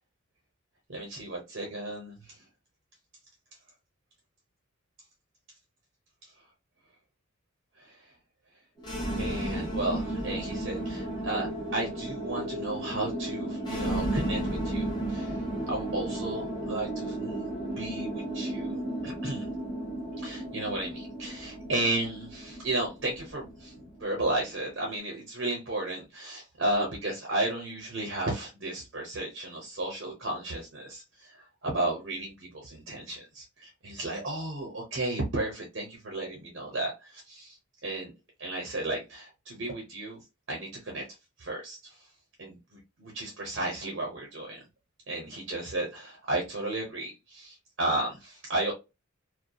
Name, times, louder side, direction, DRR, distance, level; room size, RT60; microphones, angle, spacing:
voice 1, 0.9-2.4 6.2-6.3 7.8-8.1 9.2-19.5 20.2-37.6 37.8-38.1 38.4-40.2 40.5-41.1 41.4-42.0 42.4-44.6 45.1-48.7, right 2 dB, 65° right, 0.8 m, -34 dB
sound 1, 8.8-24.8, right 1 dB, 20° left, 0.9 m, -34 dB
2.7 x 2.2 x 2.3 m
head